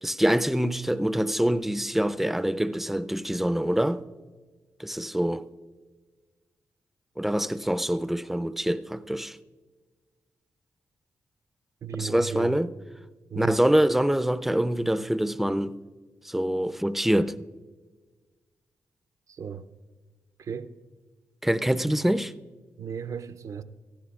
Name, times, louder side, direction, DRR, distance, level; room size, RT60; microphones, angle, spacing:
voice 1, 0.0-4.0 4.8-5.5 7.2-9.4 12.0-12.7 13.4-15.8 16.2-17.4 21.4-22.3, right 1 dB, 5° right, 0.5 m, -25 dB
voice 2, 11.8-12.5 13.3-13.6 19.3-19.7 20.4-20.7 22.8-23.6, right 7 dB, 65° right, 0.6 m, -35 dB
18.5 x 13.5 x 2.4 m
cardioid pair, 65°, 6 cm